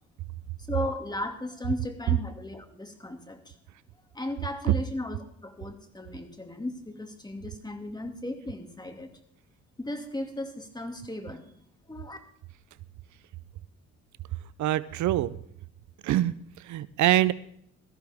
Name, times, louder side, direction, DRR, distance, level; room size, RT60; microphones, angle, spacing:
voice 1, 0.7-3.5 4.1-9.1 9.8-11.5 11.9-12.2, left 1 dB, 15° left, 5 dB, 2.4 m, -36 dB
voice 2, 14.6-15.3 16.0-17.3, right 14 dB, 75° right, 17 dB, 0.6 m, -25 dB
17.5 x 14.0 x 3.6 m, 0.65 s
cardioid pair, 90°, 30 cm